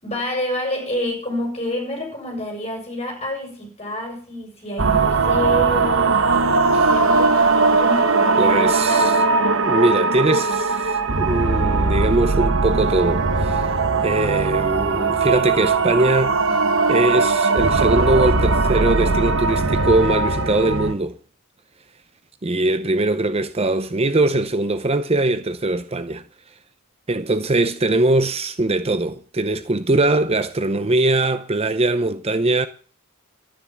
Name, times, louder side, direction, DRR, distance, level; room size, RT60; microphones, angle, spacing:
voice 1, 0.0-6.2 6.8-9.3, left 1 dB, 30° left, 6.4 m, -28 dB
sound 1, 4.8-20.9, right 3 dB, 60° right, 1.3 m, -19 dB
voice 2, 8.4-9.2 9.6-13.7 14.0-16.4 16.9-21.2 22.4-26.2 27.1-32.7, right 2 dB, 25° right, 0.7 m, -21 dB
12.0 x 10.0 x 7.3 m
head